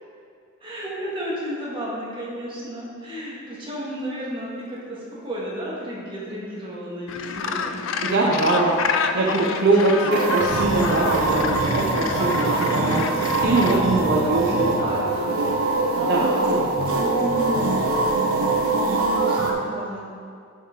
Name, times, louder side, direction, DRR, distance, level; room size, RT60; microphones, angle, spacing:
voice 1, 0.6-8.5 8.8-10.3 12.1-12.8 13.4-15.3 15.9-16.7 16.9-17.6 18.8-20.1, equal, 25° right, -7 dB, 1.8 m, -33 dB
Gull seagull, 7.1-13.8, left 5 dB, 65° left, 0.4 m, -29 dB
voice 2, 8.0-8.8 9.1-14.7 16.0-16.7, right 2 dB, 55° right, -3 dB, 0.7 m, -22 dB
sound 1, 10.1-19.5, right 2 dB, 85° right, 0.9 m, -23 dB
9.7 x 4.8 x 3.8 m, 2.3 s
head